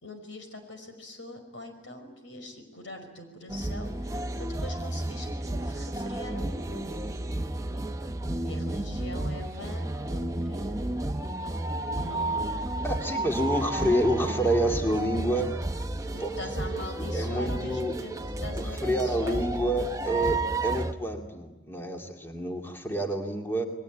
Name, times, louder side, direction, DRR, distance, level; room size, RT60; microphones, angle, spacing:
voice 1, 0.0-7.0 8.4-11.0 11.9-12.6 12.9-13.1 16.1-19.4, left 1 dB, 75° left, 6 dB, 5.4 m, -43 dB
sound 1, 3.5-20.9, right 2 dB, 15° right, 0.9 m, -32 dB
voice 2, 12.8-15.5 16.2-16.3 17.1-18.0 18.5-23.7, right 1 dB, 10° left, 3 dB, 2.3 m, -28 dB
28.5 x 22.0 x 9.2 m, 1.1 s
head